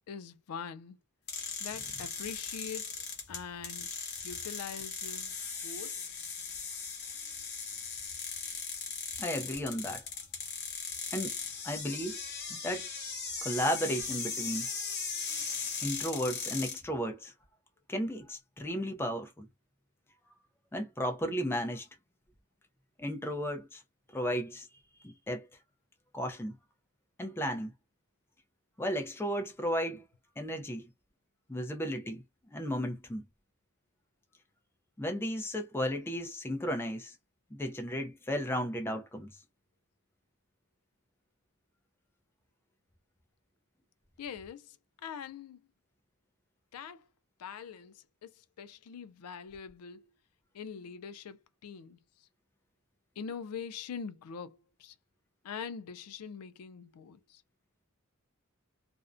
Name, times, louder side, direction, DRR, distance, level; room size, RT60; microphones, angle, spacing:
voice 1, 0.1-1.0 1.6-6.0 44.2-45.6 46.7-47.1 47.4-50.1 50.5-52.0 53.2-55.0 55.4-57.4, left 6 dB, 80° left, 0.4 m, -43 dB
sound 1, 1.3-16.8, left 5 dB, 50° left, 0.9 m, -38 dB
voice 2, 9.2-10.0 11.1-11.4 11.6-12.2 12.5-12.9 13.4-14.7 15.8-17.3 17.9-19.5 20.7-21.9 23.0-23.8 24.1-24.7 25.0-25.5 26.1-26.6 27.2-27.7 28.8-30.0 30.4-30.9 31.5-32.2 32.5-33.2 35.0-37.1 37.5-39.3, equal, 10° left, 0.4 m, -34 dB
2.5 x 2.1 x 2.4 m
head